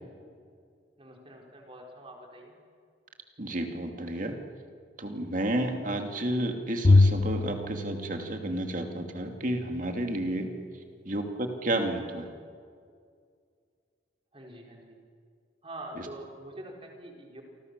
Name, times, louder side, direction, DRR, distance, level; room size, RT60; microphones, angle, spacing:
voice 1, 1.0-2.5 10.8-11.1 14.3-15.0 15.6-17.4, right 1 dB, 30° right, 1 dB, 4.3 m, -45 dB
voice 2, 3.4-4.4 5.0-10.5 11.0-12.3, right 1 dB, 45° right, 4 dB, 2.5 m, -31 dB
Bowed string instrument, 6.8-9.2, left 3 dB, 45° left, 0.8 m, -24 dB
29.0 x 24.5 x 6.8 m, 2.2 s
head